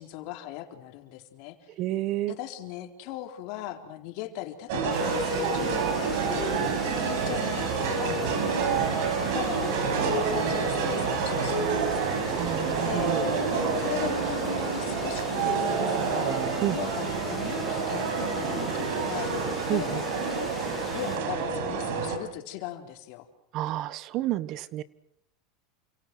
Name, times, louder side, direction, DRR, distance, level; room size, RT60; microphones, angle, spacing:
voice 1, 0.0-1.7 2.3-12.5 12.8-16.4 16.7-20.5 20.9-23.3, left 13 dB, 60° left, 5 dB, 4.0 m, -39 dB
voice 2, 1.8-2.3 12.3-13.2 16.6-16.8 19.7-20.0 23.5-24.8, right 15 dB, 50° right, 16 dB, 1.3 m, -29 dB
sound 1, 4.7-22.2, right 5 dB, 70° right, 6.3 m, -28 dB
sound 2, 4.9-21.2, left 6 dB, 20° left, 6.5 m, -43 dB
29.0 x 27.0 x 6.2 m, 0.71 s
supercardioid pair, 125°, 0 cm